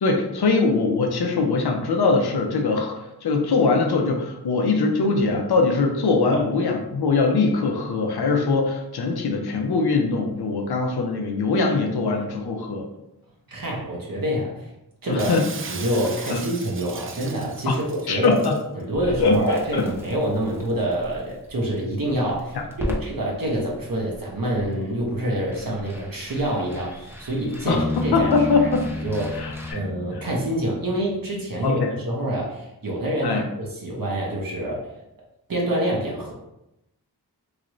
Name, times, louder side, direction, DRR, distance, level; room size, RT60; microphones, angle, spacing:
voice 1, 0.0-12.9 15.1-15.5 16.3-16.4 17.7-17.8 18.1-18.6 19.2-19.8 22.8-23.0 27.6-27.8 28.1-28.8 29.3-29.8 31.6-31.9 33.2-33.4, left 3 dB, 70° left, 2 dB, 0.6 m, -22 dB
voice 2, 13.5-14.7 15.0-15.3 15.7-18.3 18.7-28.3 29.0-29.4 29.7-34.9 35.5-36.3, right 1 dB, 55° right, -3 dB, 0.9 m, -26 dB
Shatter, 15.2-18.6, right 5 dB, 35° right, 0.4 m, -37 dB
Crackle, 18.9-29.7, equal, 5° right, 0.8 m, -39 dB
Bass guitar, 27.7-31.2, left 3 dB, 25° left, 0.6 m, -31 dB
3.1 x 2.5 x 3.0 m, 0.89 s
cardioid pair, 40°, 41 cm